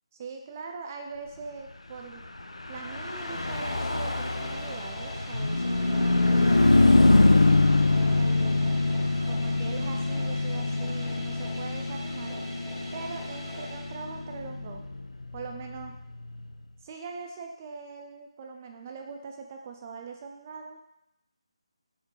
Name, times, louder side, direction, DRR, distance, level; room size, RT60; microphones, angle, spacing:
voice 1, 0.1-2.3 2.7-7.4 7.9-8.8 9.2-12.4 12.9-14.8 15.3-15.9 16.8-20.9, right 5 dB, 25° right, 3 dB, 0.3 m, -41 dB
Car passing by / Truck, 2.6-16.3, left 2 dB, 80° left, 0.4 m, -24 dB
sound 1, 2.7-14.5, equal, 15° left, 0.7 m, -43 dB
4.3 x 3.6 x 2.9 m, 0.82 s
figure-of-eight pair, 155°, 3 cm